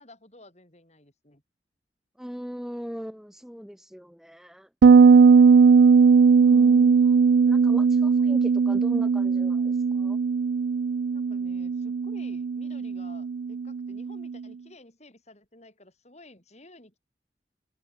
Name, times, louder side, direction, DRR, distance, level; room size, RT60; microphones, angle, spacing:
voice 1, 0.0-1.4 5.0-5.9 11.1-17.0, left 1 dB, 40° left, 7.2 m, -52 dB
voice 2, 2.2-4.7 6.4-10.2, equal, ahead, 0.9 m, -39 dB
Bass guitar, 4.8-14.2, right 5 dB, 65° right, 0.4 m, -18 dB
head